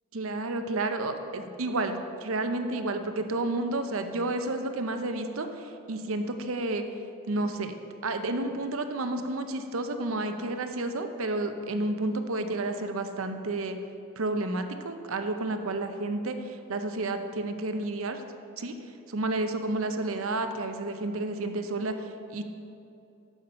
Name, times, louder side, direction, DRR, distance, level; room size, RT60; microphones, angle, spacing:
voice 1, 0.1-6.8 7.3-7.7 8.0-13.8 14.2-18.2 18.6-18.7 19.1-22.4, right 2 dB, 75° right, 7 dB, 0.7 m, -31 dB
8.2 x 7.2 x 5.3 m, 2.7 s
head